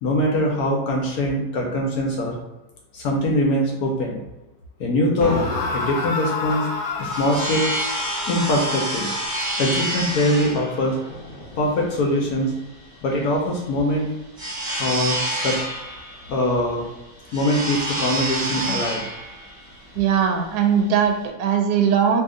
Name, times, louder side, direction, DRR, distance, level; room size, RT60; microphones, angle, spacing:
voice 1, 0.0-2.4 2.9-4.2 4.8-5.4 5.7-6.7 7.0-7.7 8.3-9.1 9.6-11.0 11.6-12.5 13.0-14.0 14.8-15.6 16.3-16.8 17.3-19.0, left 1 dB, 70° left, 0 dB, 1.0 m, -22 dB
sound 1, 5.2-12.3, left 3 dB, 85° left, 1.3 m, -31 dB
sound 2, 6.7-21.3, right 1 dB, 40° right, 1.0 m, -29 dB
voice 2, 20.0-22.2, right 7 dB, 75° right, 3 dB, 1.1 m, -20 dB
2.8 x 2.7 x 3.6 m, 1.0 s
omnidirectional pair, 1.9 m